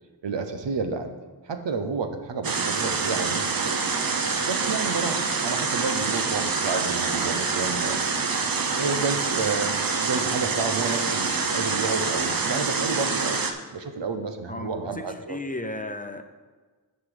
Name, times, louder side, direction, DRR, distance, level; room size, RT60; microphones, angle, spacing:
voice 1, 0.2-1.1 1.4-3.8 4.4-8.0 8.7-13.4 13.7-15.4, right 4 dB, 90° right, 7 dB, 0.8 m, -30 dB
sound 1, 2.4-13.5, right 4 dB, 55° right, 0.8 m, -26 dB
voice 2, 15.0-16.2, left 2 dB, 20° left, 7 dB, 0.7 m, -34 dB
9.7 x 5.3 x 4.9 m, 1.4 s
wide cardioid pair, 65°, 42 cm